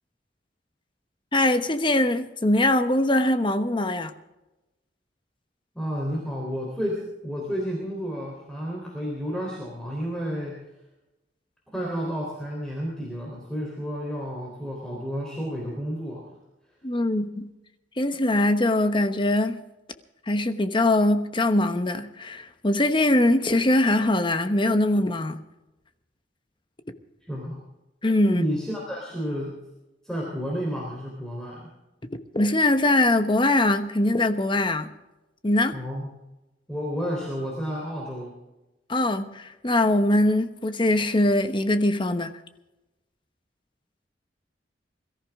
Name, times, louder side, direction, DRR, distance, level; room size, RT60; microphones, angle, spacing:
voice 1, 1.3-4.1 16.8-17.5 18.0-19.6 20.3-25.4 28.0-28.4 32.3-34.9 35.4-35.8 38.9-42.3, left 1 dB, 30° left, 1.0 m, -22 dB
voice 2, 5.8-10.6 11.7-16.3 27.3-27.6 28.2-29.6 30.0-31.7 35.7-36.1 36.7-38.3, equal, 5° left, 3.6 m, -31 dB
22.0 x 14.0 x 3.6 m
head